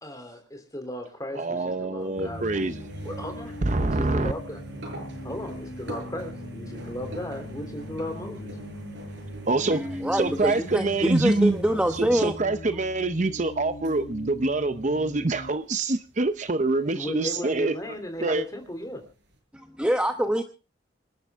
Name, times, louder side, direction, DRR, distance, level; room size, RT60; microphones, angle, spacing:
voice 1, 0.0-2.7 3.0-4.6 5.2-8.5 16.9-19.0, left 1 dB, 20° left, 3.2 m, -36 dB
voice 2, 1.4-3.2 3.6-4.3 9.5-9.9 10.1-11.6 12.0-17.7 18.2-18.4, right 2 dB, 40° right, 0.7 m, -25 dB
sound 1, 2.0-14.1 14.4-19.3, right 1 dB, 75° right, 6.7 m, -42 dB
sound 2, 2.2-15.5, left 1 dB, 65° left, 1.6 m, -41 dB
voice 3, 9.7-12.3 19.8-20.4, equal, 5° right, 0.9 m, -25 dB
27.0 x 11.5 x 3.6 m
head